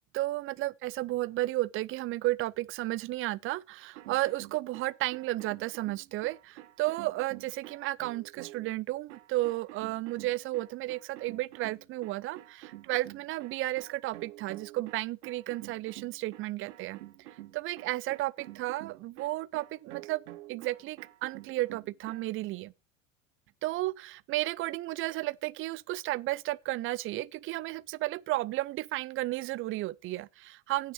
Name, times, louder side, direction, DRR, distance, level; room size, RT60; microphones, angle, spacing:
voice 1, 0.1-17.0 17.5-20.2 20.5-22.7 23.6-30.9, right 18 dB, 35° right, 0.4 m, -33 dB
sound 1, 3.8-8.7 9.1-22.2, right 16 dB, 80° right, 1.0 m, -49 dB
9.5 x 5.2 x 6.3 m
supercardioid pair, 105°, 37 cm